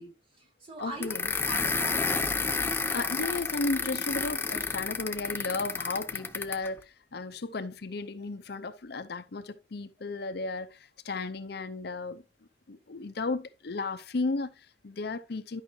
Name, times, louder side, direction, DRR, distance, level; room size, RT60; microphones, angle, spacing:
voice 1, 0.0-2.3, right 2 dB, 30° right, 4.1 m, -42 dB
voice 2, 0.8-1.3 2.9-12.2 12.7-15.6, left 3 dB, 55° left, 0.6 m, -34 dB
sound 1, 1.0-6.7, left 4 dB, 10° left, 0.6 m, -31 dB
11.0 x 5.7 x 3.2 m
head